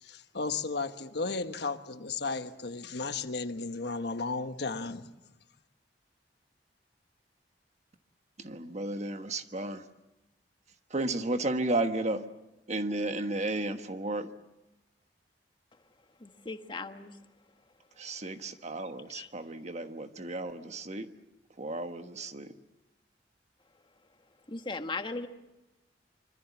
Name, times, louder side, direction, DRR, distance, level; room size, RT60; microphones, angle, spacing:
voice 1, 0.0-5.1, left 3 dB, 65° left, 1.2 m, -34 dB
voice 2, 8.4-9.8 10.9-12.2 12.7-14.3 18.0-21.1 21.6-22.5, right 2 dB, 40° right, 1.3 m, -33 dB
voice 3, 16.2-17.1 19.1-19.3 24.5-25.3, left 3 dB, 30° left, 1.4 m, -37 dB
25.5 x 25.0 x 7.2 m
head